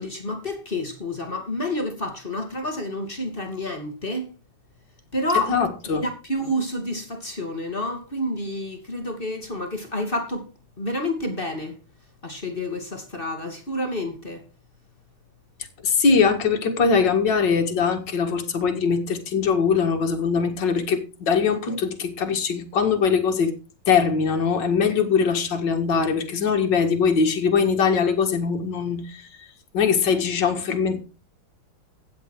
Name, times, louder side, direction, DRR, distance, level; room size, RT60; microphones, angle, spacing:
voice 1, 0.0-4.3 5.1-5.6 6.0-10.5 10.8-11.8 12.2-14.4, left 1 dB, 25° left, 2.9 m, -29 dB
voice 2, 5.5-6.0 15.8-23.5 23.9-29.3 29.7-31.0, left 5 dB, 65° left, 2.6 m, -22 dB
15.5 x 9.6 x 4.7 m
omnidirectional pair, 2.1 m